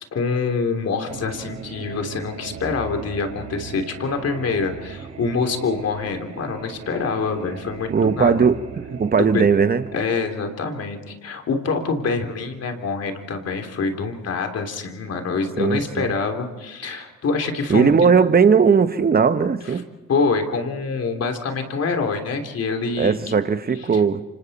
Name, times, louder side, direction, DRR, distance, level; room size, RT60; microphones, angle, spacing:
voice 1, 0.1-8.4 9.2-9.5 9.9-17.9 20.1-23.4 23.9-24.0, left 4 dB, 55° left, 3.2 m, -25 dB
sound 1, 1.1-10.1, right 6 dB, 70° right, 4.0 m, -38 dB
voice 2, 7.9-8.6 8.9-9.8 15.6-16.1 17.7-19.9 23.0-24.2, right 6 dB, 30° right, 1.1 m, -18 dB
28.5 x 26.0 x 4.3 m
cardioid pair, 90°, 30 cm